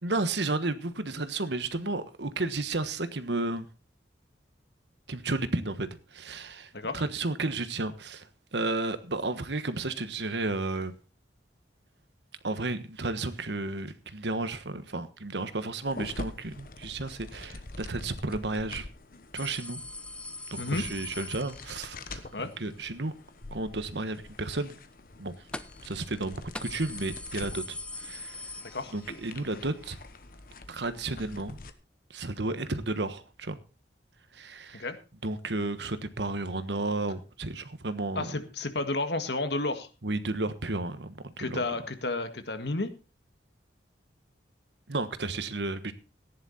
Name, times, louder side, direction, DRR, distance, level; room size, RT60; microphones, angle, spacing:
voice 1, 0.0-3.7 5.1-5.9 6.1-8.2 8.5-10.9 12.4-18.8 19.3-19.8 20.5-22.0 22.6-23.1 23.5-24.7 25.2-25.3 25.8-27.8 28.0-28.4 28.9-30.0 30.7-31.6 32.1-33.6 34.3-34.8 35.2-38.3 40.0-41.7 44.9-45.9, right 2 dB, 75° right, 1.3 m, -32 dB
sound 1, 15.9-31.7, left 2 dB, 50° left, 1.2 m, -46 dB
sound 2, 19.4-22.1 25.5-25.9 26.2-26.3 26.5-29.3 29.6-29.7 30.7-30.8, left 2 dB, 5° left, 0.6 m, -41 dB
voice 2, 38.2-39.9 41.4-42.9, left 2 dB, 70° left, 1.8 m, -31 dB
15.0 x 10.5 x 4.2 m
head